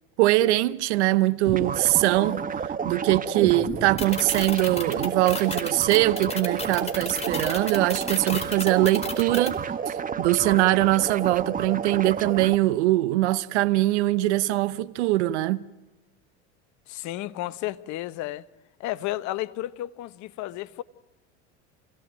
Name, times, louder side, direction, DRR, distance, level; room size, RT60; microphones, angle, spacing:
voice 1, 0.2-2.4 2.8-9.6 9.9-15.6, right 16 dB, 85° right, 0.9 m, -22 dB
sound 1, 1.5-12.5, right 6 dB, 25° right, 1.3 m, -30 dB
sound 2, 4.0-9.5, left 3 dB, 20° left, 4.8 m, -32 dB
voice 2, 16.9-18.5 18.8-20.8, left 15 dB, 55° left, 1.1 m, -32 dB
28.5 x 17.5 x 9.2 m
supercardioid pair, 100°, 34 cm